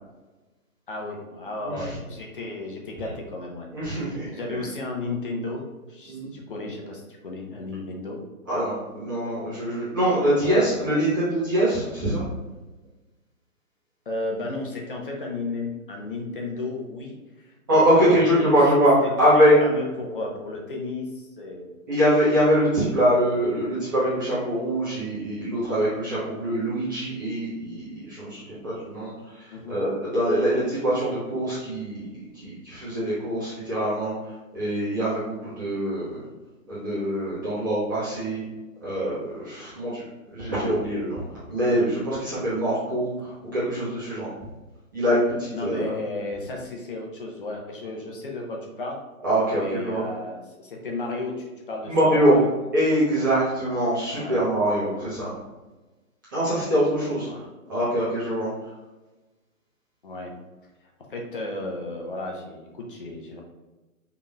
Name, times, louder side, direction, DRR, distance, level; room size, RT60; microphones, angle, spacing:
voice 1, 0.9-3.7 4.3-5.6 5.9-8.2 10.4-11.1 14.0-18.6 19.3-21.7 29.5-29.8 45.5-49.0 49.5-52.5 54.1-54.4 54.9-55.1 57.3-57.4 60.0-60.3 61.1-63.4, left 2 dB, 40° left, 0 dB, 0.9 m, -34 dB
voice 2, 1.6-1.9 3.7-4.6 6.1-6.3 8.5-12.2 17.7-19.5 21.9-36.2 36.7-38.4 38.8-40.0 40.3-41.2 41.5-44.3 44.9-45.9 49.2-50.0 51.8-52.4 52.7-55.3 56.3-57.3 57.7-58.5, equal, 15° right, -11 dB, 0.9 m, -23 dB
5.8 x 3.6 x 2.3 m, 1.1 s
hypercardioid pair, 170°, 42 cm